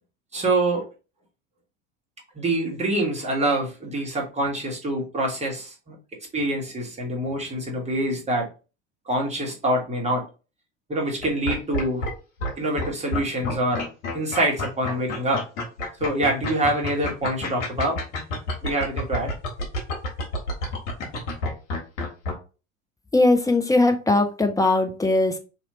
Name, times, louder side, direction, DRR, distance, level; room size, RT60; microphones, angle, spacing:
voice 1, 0.3-0.9 2.3-6.0 6.3-8.5 9.1-10.2 10.9-12.0 12.6-13.9 14.1-15.4 16.0-18.0 18.6-19.3, right 1 dB, 15° right, -1 dB, 1.5 m, -25 dB
sound 1, 11.2-12.1 12.4-12.5 12.8-22.3, left 2 dB, 65° left, 1.4 m, -28 dB
voice 2, 23.1-25.4, left 2 dB, 10° left, 5 dB, 0.6 m, -20 dB
2.9 x 2.9 x 2.8 m, 0.32 s
figure-of-eight pair, 70°, 38 cm